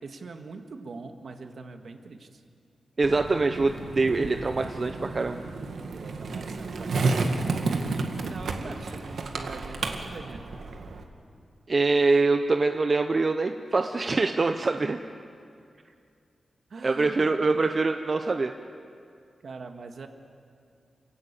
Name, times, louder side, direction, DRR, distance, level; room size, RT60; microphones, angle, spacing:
voice 1, 0.0-2.4 5.9-10.4 16.7-17.3 19.4-20.1, right 4 dB, 60° right, 5 dB, 1.8 m, -42 dB
voice 2, 3.0-5.4 11.7-15.0 16.8-18.5, right 3 dB, 35° right, 6 dB, 0.7 m, -24 dB
Skateboard, 3.0-11.0, right 3 dB, 75° right, 2.0 m, -31 dB
28.0 x 16.5 x 9.0 m, 2.4 s
wide cardioid pair, 155°, 0 cm